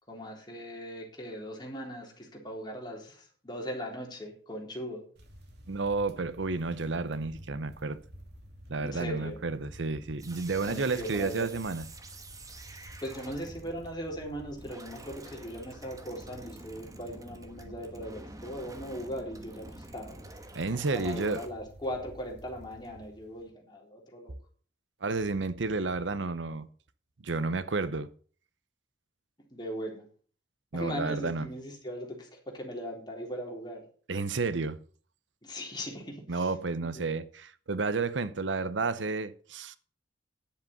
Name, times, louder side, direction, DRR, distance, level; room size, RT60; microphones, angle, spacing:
voice 1, 0.1-5.0 8.7-9.4 10.7-11.5 13.0-20.2 20.9-24.3 29.5-30.1 30.7-33.8 35.4-36.5 36.8-37.1, equal, 25° left, 3.7 m, -39 dB
sound 1, 5.2-23.5, equal, 60° right, 2.8 m, -51 dB
voice 2, 5.7-8.0 8.7-11.9 20.5-21.4 25.0-26.7 27.2-28.1 30.7-31.5 34.1-34.8 36.3-39.8, right 3 dB, 85° right, 0.8 m, -31 dB
sound 2, 10.2-21.5, right 2 dB, 20° right, 1.4 m, -49 dB
10.5 x 7.9 x 6.5 m
head